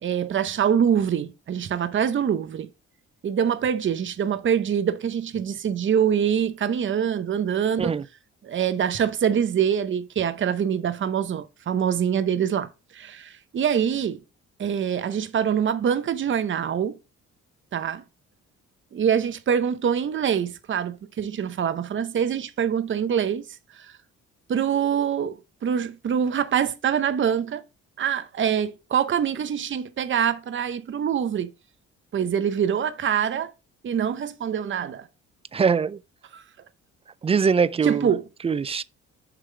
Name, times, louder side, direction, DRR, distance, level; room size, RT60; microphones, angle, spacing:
voice 1, 0.0-2.7 3.2-8.0 8.4-14.2 14.6-17.0 17.7-18.0 18.9-23.5 23.8-23.9 24.5-27.6 28.0-31.5 32.1-33.5 33.8-35.1 36.3-36.4 37.8-38.3, right 8 dB, 40° right, 0.7 m, -24 dB
voice 2, 35.5-36.0 37.2-38.1 38.4-38.8, right 5 dB, 20° right, 0.3 m, -22 dB
6.7 x 3.7 x 4.7 m
cardioid pair, 90°, 30 cm